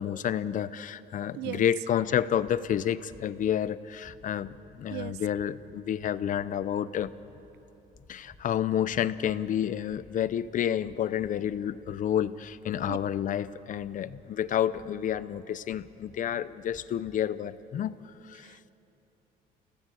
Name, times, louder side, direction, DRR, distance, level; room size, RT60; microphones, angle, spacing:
voice 1, 0.0-7.1 8.1-18.0 18.2-18.6, left 10 dB, 50° left, 16 dB, 0.7 m, -30 dB
voice 2, 1.3-1.6 4.9-5.2 12.9-13.0 18.4-18.7, right 18 dB, 85° right, 20 dB, 0.5 m, -37 dB
sound 1, 2.4-2.7 3.0-3.6 4.0-4.6 5.0-5.6 5.9-6.5 6.9-7.6 7.9-8.5 8.8-9.5 9.8-10.4 10.8-11.4 11.8-12.4 12.7-13.3 13.7-14.3 14.7-15.3 15.7-16.2 16.6-17.2, left 2 dB, 20° left, 3.2 m, -56 dB
27.5 x 17.5 x 8.3 m, 3.0 s
cardioid pair, 110°, 17 cm